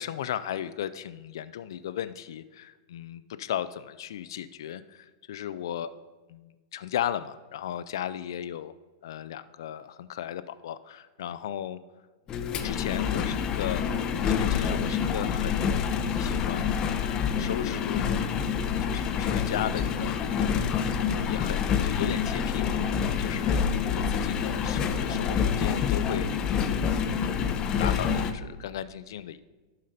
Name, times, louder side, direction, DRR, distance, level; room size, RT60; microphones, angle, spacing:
voice 1, 0.0-5.9 6.3-8.7 9.0-11.8 12.3-15.7 16.2-18.1 18.8-23.6 23.9-27.2 27.8-29.4, left 10 dB, 75° left, 14 dB, 0.4 m, -36 dB
Engine, 12.3-28.3, left 7 dB, 30° left, 0.7 m, -27 dB
11.5 x 5.0 x 4.1 m, 1.3 s
hypercardioid pair, 120°, 2 cm